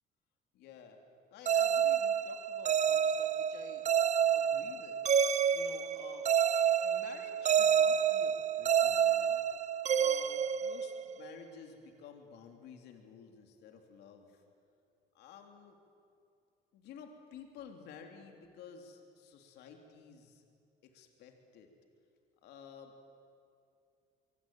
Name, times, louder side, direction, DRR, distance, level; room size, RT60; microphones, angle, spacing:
voice 1, 0.5-1.0 1.3-3.9 4.3-5.0 5.5-6.3 6.8-9.4 9.9-14.4 15.2-15.8 16.7-20.4 20.8-21.7 22.4-22.9, left 6 dB, 80° left, 4 dB, 3.3 m, -53 dB
sound 1, 1.5-11.3, right 8 dB, 45° right, 0.9 m, -29 dB
25.0 x 24.0 x 9.3 m, 2.5 s
cardioid pair, 110°, 17 cm